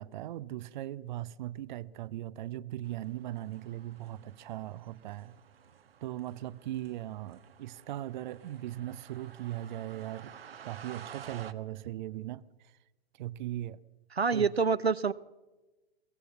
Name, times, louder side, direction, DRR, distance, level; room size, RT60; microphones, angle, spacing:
voice 1, 0.0-5.3 6.0-10.3 10.6-12.5 13.2-13.8 14.2-14.5, right 14 dB, 50° right, 0.7 m, -39 dB
sound 1, 2.8-11.5, right 8 dB, 70° right, 1.3 m, -52 dB
voice 2, 14.1-15.1, right 5 dB, 90° right, 0.8 m, -27 dB
22.5 x 17.5 x 7.2 m
figure-of-eight pair, 105°, 30 cm